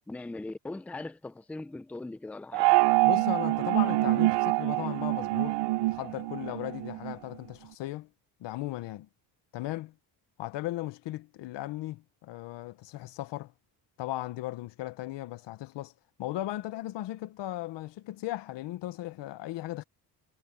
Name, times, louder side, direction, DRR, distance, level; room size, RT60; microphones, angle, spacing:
voice 1, 0.1-2.7, left 2 dB, 5° left, 0.5 m, -40 dB
sound 1, 2.5-7.1, right 19 dB, 75° right, 0.7 m, -25 dB
voice 2, 3.1-8.1 8.4-9.1 9.5-9.9 10.4-13.5 14.0-15.9 16.2-19.8, left 15 dB, 85° left, 1.3 m, -37 dB
cardioid pair, 180°, 42 cm